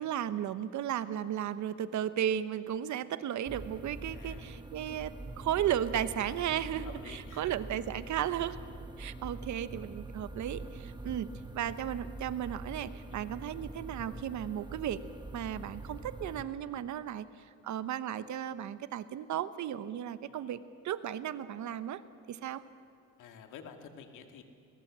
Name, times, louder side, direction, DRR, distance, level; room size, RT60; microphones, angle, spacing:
voice 1, 0.0-8.6 9.0-15.0 15.3-17.3 17.6-22.0 22.3-22.6, right 10 dB, 70° right, 13 dB, 1.0 m, -35 dB
sound 1, 3.5-16.4, right 2 dB, 15° right, 1.4 m, -44 dB
voice 2, 4.1-4.4 6.8-7.5 13.1-13.2 20.2-20.5 23.2-24.4, left 7 dB, 85° left, 5 dB, 2.2 m, -50 dB
22.0 x 20.0 x 7.5 m, 2.3 s
cardioid pair, 90°, 30 cm